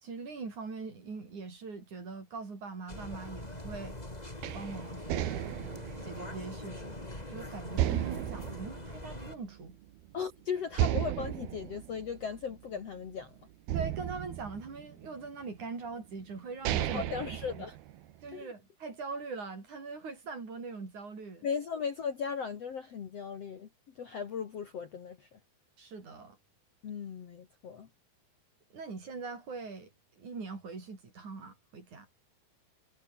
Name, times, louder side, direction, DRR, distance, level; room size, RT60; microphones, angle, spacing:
voice 1, 0.0-4.0 4.5-5.4 6.0-7.0 7.3-9.8 13.7-17.0 17.5-17.6 18.2-21.5 25.8-26.4 28.7-32.1, right 4 dB, 35° right, 6.4 m, -42 dB
sound 1, 2.9-9.4, left 1 dB, 10° left, 3.6 m, -43 dB
sound 2, 4.4-7.2 7.8-9.7 10.1-10.2 10.7-13.1 13.7-15.3 16.0-16.1 16.5-18.3, right 13 dB, 65° right, 2.5 m, -34 dB
voice 2, 10.1-13.3 16.8-17.7 18.3-18.5 21.4-23.7 23.9-25.4 26.8-27.9, left 6 dB, 85° left, 1.4 m, -37 dB
omnidirectional pair, 5.9 m